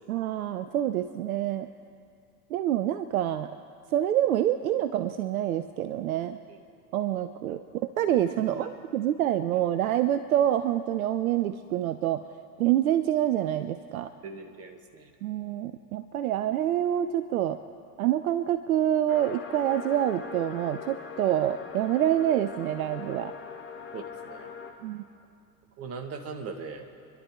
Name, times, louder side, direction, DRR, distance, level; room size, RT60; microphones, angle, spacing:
voice 1, 0.1-1.7 2.5-3.5 3.9-6.4 6.9-7.6 8.0-12.2 12.6-14.1 15.2-17.6 18.0-23.3 24.8-25.0, right 11 dB, 65° right, 12 dB, 0.7 m, -26 dB
voice 2, 8.4-8.7 14.2-15.1 23.9-24.5 25.8-26.9, right 4 dB, 30° right, 5 dB, 1.7 m, -40 dB
sound 1, 19.1-24.7, left 6 dB, 25° left, 2.1 m, -41 dB
28.5 x 11.5 x 3.7 m, 2.4 s
figure-of-eight pair, 85°, 47 cm